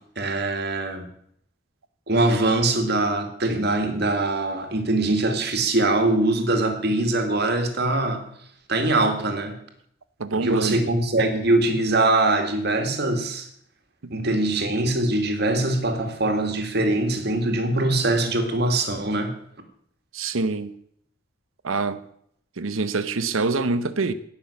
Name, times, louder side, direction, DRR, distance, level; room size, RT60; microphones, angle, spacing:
voice 1, 0.2-1.1 2.1-8.3 8.7-9.6 10.3-13.5 14.1-19.4, right 2 dB, 50° right, 2.1 m, -22 dB
voice 2, 10.2-10.8 14.0-14.1 20.1-20.7 21.6-22.0 22.6-24.1, right 3 dB, 80° right, 0.9 m, -25 dB
16.5 x 6.4 x 7.1 m
head